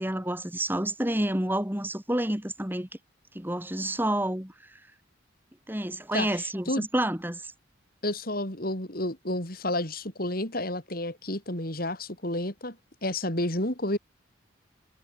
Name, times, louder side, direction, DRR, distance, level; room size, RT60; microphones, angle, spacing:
voice 1, 0.0-2.9 3.3-4.8 5.7-7.5, right 1 dB, 10° right, 2.3 m, -29 dB
voice 2, 6.1-6.8 8.0-12.8 13.0-14.0, left 1 dB, 50° left, 5.4 m, -30 dB
head